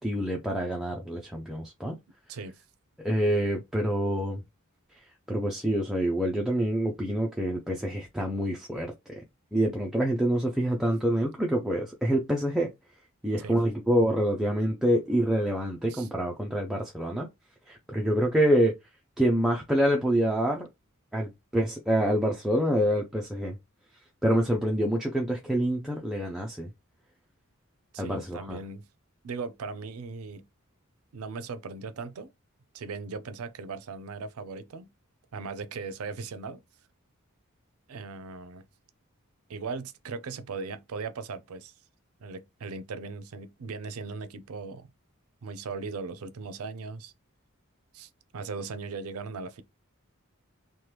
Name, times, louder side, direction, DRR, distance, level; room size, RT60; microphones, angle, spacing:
voice 1, 0.0-2.0 3.0-4.4 5.3-9.2 9.5-12.7 13.2-17.3 17.7-18.7 19.2-20.7 21.1-23.6 24.2-26.7 28.0-28.6, equal, ahead, 0.4 m, -26 dB
voice 2, 27.9-28.8 29.2-30.4 31.1-32.3 32.7-34.9 35.3-36.6 37.9-38.6 39.5-41.7 42.2-44.9 45.4-47.1 47.9-49.6, right 4 dB, 80° right, 0.4 m, -38 dB
2.9 x 2.2 x 3.2 m
head